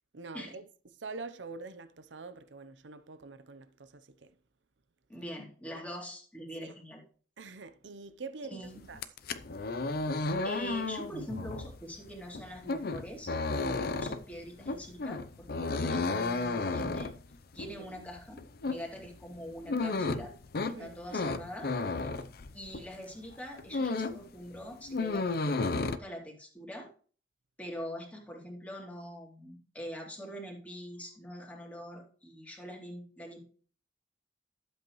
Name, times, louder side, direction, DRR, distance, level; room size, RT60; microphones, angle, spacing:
voice 1, 0.1-0.6 0.9-4.3 5.7-5.8 6.6-6.7 7.4-9.0 17.6-18.0 20.7-21.0, right 3 dB, 90° right, 0.7 m, -45 dB
voice 2, 5.1-7.0 8.5-8.8 10.4-17.1 17.5-20.3 20.6-21.7 22.0-22.1 22.5-26.9 27.6-33.4, equal, 10° left, 2.5 m, -44 dB
sound 1, 8.9-23.0 23.3-24.3 24.6-26.0, left 3 dB, 55° left, 0.6 m, -33 dB
11.5 x 7.8 x 3.1 m
head